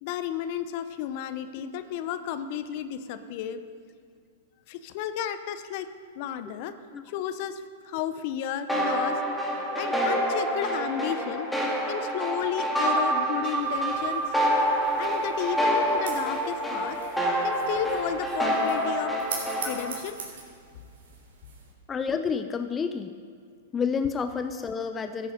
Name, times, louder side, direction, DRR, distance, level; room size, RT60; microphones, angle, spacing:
voice 1, 0.0-3.6 4.7-5.9 6.1-6.7 7.1-9.2 9.8-11.5 11.9-14.2 15.0-17.0 17.4-19.1 19.6-20.2, left 10 dB, 50° left, 12 dB, 0.8 m, -33 dB
sound 1, 8.7-20.0, right 1 dB, 5° left, 2.1 m, -27 dB
sound 2, 13.5-21.7, right 5 dB, 70° right, 3.1 m, -43 dB
voice 2, 21.9-23.2 23.7-25.3, left 6 dB, 20° left, 9 dB, 0.5 m, -29 dB
14.0 x 8.6 x 5.1 m, 2.2 s
hypercardioid pair, 115°, 0 cm